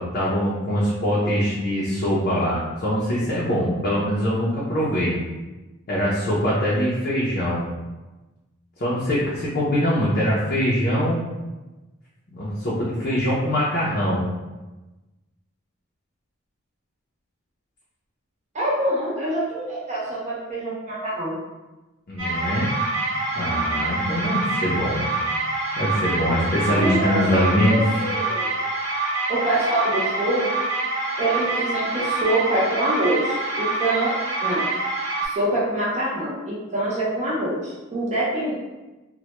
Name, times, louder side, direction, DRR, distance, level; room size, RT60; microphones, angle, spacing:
voice 1, 0.0-5.2 5.9-7.6 8.8-11.2 12.3-14.2 22.1-22.7 23.3-25.1 25.8-27.8, equal, 45° left, -7 dB, 0.5 m, -23 dB
voice 2, 18.5-21.3 26.7-28.5 29.3-30.5 31.2-34.1 34.4-34.6 35.2-38.6, right 1 dB, 35° right, -6 dB, 0.5 m, -25 dB
sound 1, 22.2-35.3, right 2 dB, 60° right, 0.8 m, -26 dB
2.1 x 2.1 x 2.8 m, 1.1 s
head